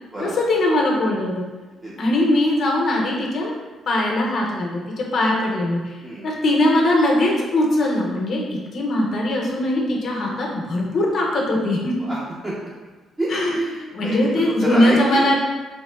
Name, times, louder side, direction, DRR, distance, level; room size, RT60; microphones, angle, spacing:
voice 1, 0.2-1.4 2.0-3.5 3.9-5.9 6.2-8.4 8.7-12.0 13.3-13.5 13.9-15.4, left 1 dB, 60° left, -2 dB, 0.6 m, -20 dB
voice 2, 12.0-12.7 13.2-15.3, right 1 dB, 20° right, -7 dB, 0.6 m, -29 dB
3.4 x 2.9 x 2.2 m, 1.3 s
cardioid pair, 90°, 0 cm